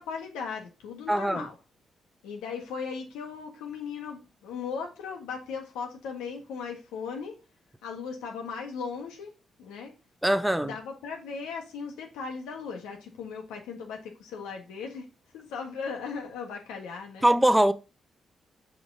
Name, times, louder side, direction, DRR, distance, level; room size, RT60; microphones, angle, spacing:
voice 1, 0.0-1.5 2.2-7.4 7.8-9.3 9.6-9.9 10.6-15.1 15.3-17.3, left 5 dB, 85° left, 1.6 m, -37 dB
voice 2, 1.1-1.4 10.2-10.7 17.2-17.7, right 1 dB, 10° right, 0.8 m, -22 dB
7.3 x 5.0 x 4.0 m
hypercardioid pair, 45°, 0 cm